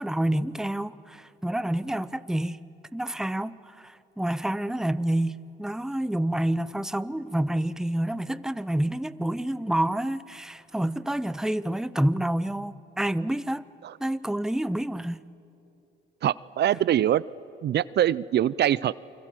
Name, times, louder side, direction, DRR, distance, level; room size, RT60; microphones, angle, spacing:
voice 1, 0.0-2.6 2.9-13.6 14.0-15.2, right 1 dB, 5° right, 0.7 m, -28 dB
voice 2, 16.2-17.2 17.6-18.9, right 11 dB, 60° right, 0.5 m, -23 dB
28.5 x 24.5 x 7.6 m
cardioid pair, 90°, 20 cm